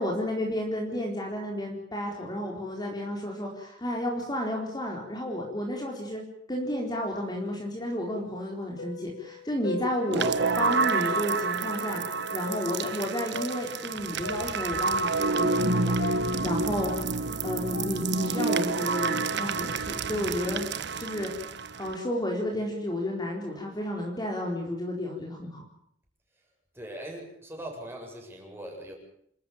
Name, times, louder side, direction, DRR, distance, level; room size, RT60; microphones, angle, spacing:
voice 1, 0.0-6.2 6.5-10.3 10.6-12.0 12.3-16.0 16.4-16.9 17.4-20.7 21.0-21.3 21.8-25.6, left 1 dB, 20° left, 0 dB, 4.2 m, -32 dB
sound 1, 7.0-7.5 7.8-10.6 11.4-11.5 12.5-18.4, left 2 dB, 65° left, 2.2 m, -41 dB
sound 2, 10.1-22.0, right 3 dB, 65° right, 1.3 m, -29 dB
voice 2, 26.7-28.9, right 1 dB, 10° right, 0 dB, 7.7 m, -40 dB
28.5 x 14.0 x 8.8 m, 0.71 s
head